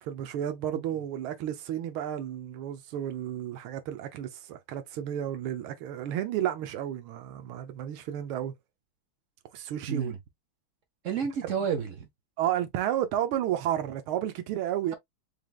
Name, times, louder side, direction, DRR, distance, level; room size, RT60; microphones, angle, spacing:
voice 1, 0.0-8.5 9.5-10.2 12.4-15.0, right 11 dB, 90° right, 1.6 m, -32 dB
voice 2, 9.9-10.2 11.0-12.1, right 7 dB, 65° right, 0.8 m, -30 dB
4.9 x 3.4 x 2.3 m
omnidirectional pair, 2.3 m